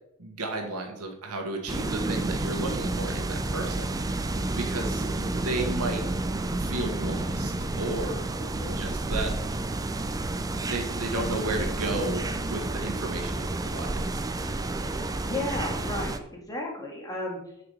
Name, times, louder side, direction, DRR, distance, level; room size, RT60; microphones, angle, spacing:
voice 1, 0.2-6.0 6.6-8.3 8.6-9.3 10.6-13.9, right 2 dB, 85° right, 3 dB, 1.5 m, -33 dB
sound 1, 1.7-16.2, right 2 dB, 15° right, 0.5 m, -30 dB
voice 2, 8.3-8.8 14.8-17.4, left 1 dB, 15° left, -1 dB, 1.8 m, -34 dB
6.7 x 5.0 x 5.5 m, 0.79 s
head